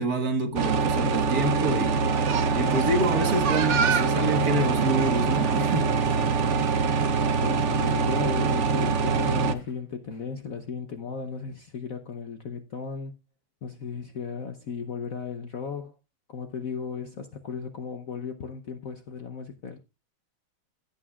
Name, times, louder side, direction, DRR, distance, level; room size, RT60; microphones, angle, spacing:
voice 1, 0.0-2.1 2.6-5.9, right 1 dB, 50° right, 1.8 m, -27 dB
sound 1, 0.5-9.5, right 5 dB, 65° right, 0.7 m, -24 dB
Shout / Cheering, 1.4-9.7 10.1-10.2, left 3 dB, 75° left, 4.4 m, -43 dB
voice 2, 7.4-13.1 13.6-15.9 16.3-19.8, left 6 dB, 55° left, 1.0 m, -35 dB
16.0 x 8.6 x 2.3 m
omnidirectional pair, 2.2 m